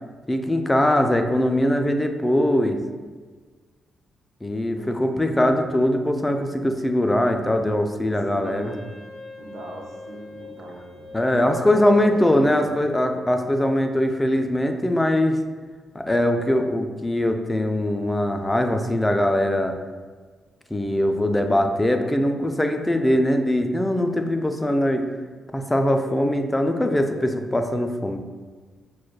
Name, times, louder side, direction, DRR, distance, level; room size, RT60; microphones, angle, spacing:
voice 1, 0.3-2.8 4.4-8.7 11.1-15.4 15.9-19.8 20.7-25.0 25.5-28.2, left 1 dB, 15° left, 5 dB, 0.4 m, -21 dB
voice 2, 4.7-5.6 8.1-9.0 9.3-13.0, right 2 dB, 75° right, -2 dB, 0.7 m, -40 dB
Wind instrument woodwind instrument, 8.4-13.5, left 3 dB, 60° left, 0.6 m, -41 dB
6.0 x 2.3 x 2.2 m, 1.5 s
supercardioid pair, 50°, 0 cm